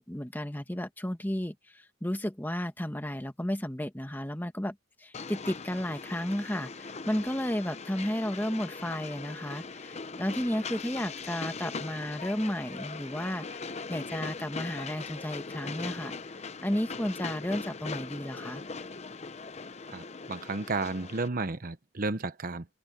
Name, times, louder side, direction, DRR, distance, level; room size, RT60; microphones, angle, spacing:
voice 1, 0.0-16.1 16.6-18.6, equal, 10° left, 1.2 m, -33 dB
Train, 5.1-21.3, left 4 dB, 30° left, 0.7 m, -40 dB
voice 2, 19.9-22.7, right 3 dB, 45° right, 0.9 m, -33 dB
head